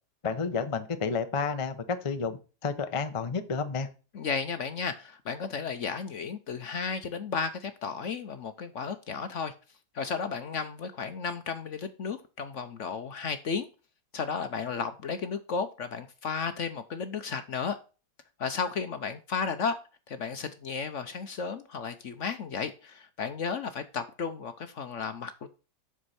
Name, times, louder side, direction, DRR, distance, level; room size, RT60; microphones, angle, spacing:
voice 1, 0.2-3.9, left 5 dB, 30° left, 9 dB, 0.6 m, -31 dB
voice 2, 4.1-9.5 9.9-13.7 14.1-17.8 18.4-19.8 20.1-25.5, left 5 dB, 55° left, 10 dB, 0.9 m, -33 dB
8.0 x 6.3 x 4.2 m, 0.34 s
omnidirectional pair, 1.8 m